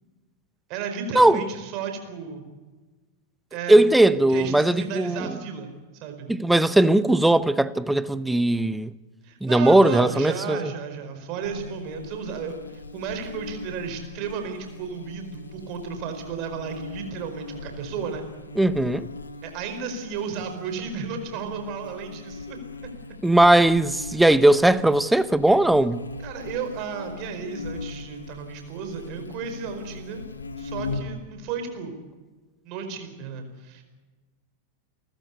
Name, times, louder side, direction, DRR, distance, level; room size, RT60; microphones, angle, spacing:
voice 1, 0.7-2.4 3.5-3.8 4.3-6.3 9.2-18.2 19.4-22.6 26.2-30.2 30.6-31.9 32.6-33.8, right 6 dB, 40° right, 4.8 m, -33 dB
voice 2, 3.7-5.4 6.3-8.9 9.4-10.7 18.6-19.1 23.2-26.0, right 1 dB, 5° right, 0.7 m, -19 dB
Buzz, 11.4-31.2, left 3 dB, 75° left, 1.8 m, -39 dB
29.5 x 14.5 x 8.4 m
figure-of-eight pair, 90°, 0 cm